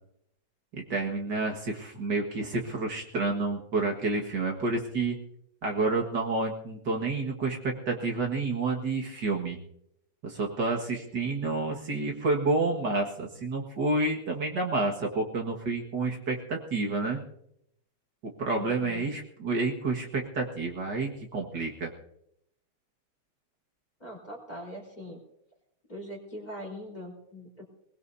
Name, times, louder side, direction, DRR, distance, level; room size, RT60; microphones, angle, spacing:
voice 1, 0.7-5.2 5.6-9.6 10.2-17.2 18.4-21.9, right 3 dB, 55° right, 0 dB, 2.3 m, -29 dB
voice 2, 18.5-19.0 24.0-25.2 25.9-27.7, equal, 20° left, 0 dB, 4.1 m, -42 dB
21.0 x 21.0 x 2.7 m, 0.76 s
omnidirectional pair, 2.2 m